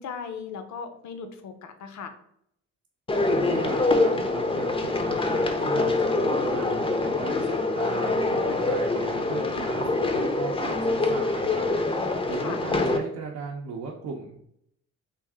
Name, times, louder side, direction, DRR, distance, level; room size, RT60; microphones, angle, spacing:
voice 1, 0.0-2.1 12.3-12.6, left 6 dB, 70° left, 8 dB, 0.6 m, -38 dB
sound 1, 3.1-13.0, left 2 dB, 20° left, 0.5 m, -25 dB
voice 2, 3.2-14.4, right 5 dB, 65° right, -2 dB, 0.6 m, -37 dB
3.3 x 2.5 x 3.5 m, 0.73 s
cardioid pair, 90°, 30 cm